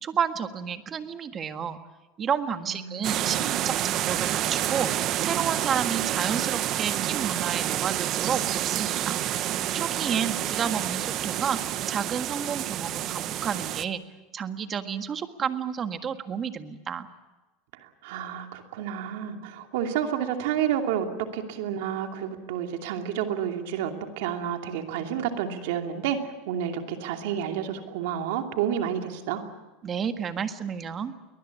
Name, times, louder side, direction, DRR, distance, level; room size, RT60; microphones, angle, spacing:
voice 1, 0.0-1.8 2.2-9.2 9.7-11.6 11.9-14.0 14.3-17.1 29.8-31.1, right 7 dB, 30° right, 8 dB, 1.6 m, -31 dB
voice 2, 2.7-3.7 17.7-21.1 21.3-29.4, right 9 dB, 75° right, 4 dB, 2.7 m, -30 dB
sound 1, 3.0-13.8, right 12 dB, 45° right, 1.0 m, -28 dB
22.5 x 19.5 x 8.4 m, 1.2 s
supercardioid pair, 125°, 0 cm